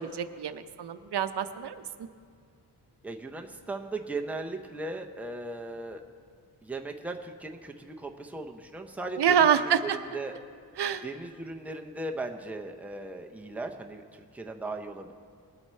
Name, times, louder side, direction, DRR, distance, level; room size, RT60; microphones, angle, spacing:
voice 1, 0.0-1.8 9.2-10.0 10.8-11.0, right 8 dB, 75° right, 10 dB, 0.6 m, -26 dB
voice 2, 3.0-6.0 6.6-9.5 9.8-10.3 11.0-15.1, right 2 dB, 5° right, 3 dB, 0.6 m, -37 dB
20.0 x 7.8 x 4.3 m, 2.1 s
wide cardioid pair, 155°, 40 cm